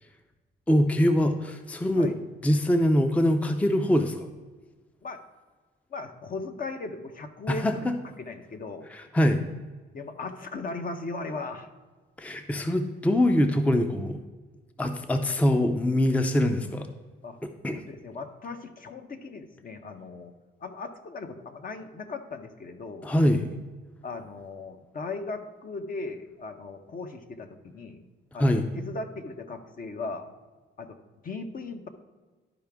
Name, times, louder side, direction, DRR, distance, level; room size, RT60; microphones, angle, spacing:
voice 1, 0.7-2.1 2.4-4.3 7.5-7.9 8.9-9.4 12.2-14.2 14.8-16.9 17.4-17.8 23.0-23.5 28.4-28.7, left 1 dB, 5° left, 7 dB, 0.5 m, -23 dB
voice 2, 5.9-7.7 8.2-8.9 9.9-11.7 17.2-17.4 17.7-20.3 20.6-23.1 24.0-28.0 28.3-30.3 30.8-31.0 31.2-31.9, left 3 dB, 45° left, 7 dB, 0.9 m, -38 dB
12.0 x 4.9 x 3.5 m, 1.3 s
cardioid pair, 90°, 20 cm